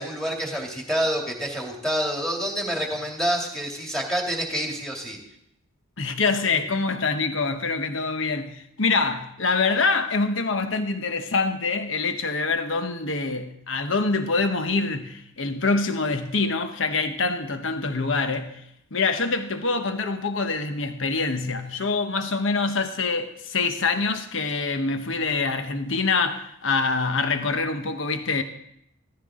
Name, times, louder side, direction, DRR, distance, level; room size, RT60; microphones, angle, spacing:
voice 1, 0.0-5.2, equal, 5° left, 2.6 m, -27 dB
voice 2, 6.0-18.6 18.9-28.4, left 4 dB, 65° left, 1.1 m, -25 dB
16.0 x 14.5 x 3.7 m
head